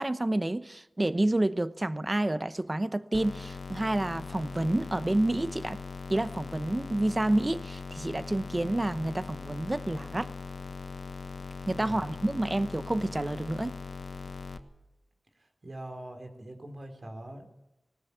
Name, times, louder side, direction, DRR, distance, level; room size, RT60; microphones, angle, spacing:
voice 1, 0.0-5.8 6.1-10.3 11.7-13.7, right 1 dB, 30° right, 0.9 m, -29 dB
sound 1, 3.1-14.6, left 4 dB, 70° left, 1.4 m, -40 dB
voice 2, 15.6-17.5, right 1 dB, 55° right, 4.0 m, -42 dB
19.0 x 17.5 x 8.5 m
wide cardioid pair, 65°, 0 cm